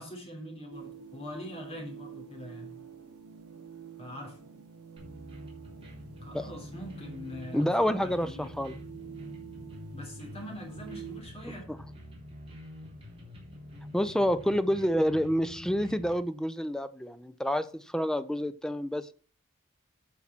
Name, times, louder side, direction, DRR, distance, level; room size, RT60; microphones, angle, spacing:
voice 1, 0.0-2.8 4.0-4.4 6.2-8.5 9.9-11.8, left 1 dB, 30° left, 1 dB, 3.4 m, -43 dB
sound 1, 0.7-11.2, right 7 dB, 75° right, 1.2 m, -48 dB
sound 2, 5.0-16.1, left 1 dB, 25° right, 3.3 m, -47 dB
voice 2, 7.5-8.8 13.9-19.1, equal, 5° left, 12 dB, 0.5 m, -28 dB
9.9 x 5.9 x 4.3 m, 0.40 s
head